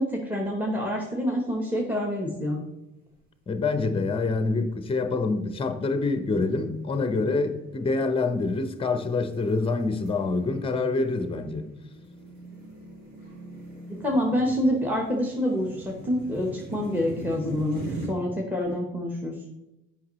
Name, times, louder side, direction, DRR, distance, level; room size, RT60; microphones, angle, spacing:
voice 1, 0.0-2.6 13.9-17.8 18.1-19.4, equal, 5° right, 1.0 m, -27 dB
sound 1, 1.6-2.1 2.5-2.6 3.3-3.8 4.4-4.6 5.2-18.1, right 1 dB, 70° right, 2.7 m, -42 dB
voice 2, 3.5-11.7, left 3 dB, 20° left, 0.6 m, -26 dB
8.1 x 5.4 x 3.1 m
cardioid pair, 90°, 30 cm